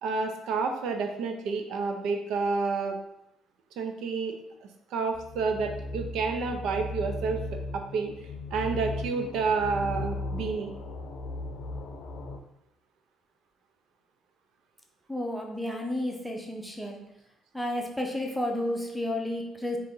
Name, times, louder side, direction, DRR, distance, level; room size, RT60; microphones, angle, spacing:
voice 1, 0.0-3.0 3.8-4.3 4.9-7.4 7.7-8.1 8.5-10.7, right 4 dB, 80° right, 5 dB, 0.5 m, -29 dB
sound 1, 5.1-12.4, left 2 dB, 75° left, 0.5 m, -37 dB
voice 2, 15.1-17.0 17.5-19.8, left 1 dB, ahead, 1 dB, 0.8 m, -31 dB
3.7 x 2.8 x 3.7 m, 0.82 s
cardioid pair, 90°, 0 cm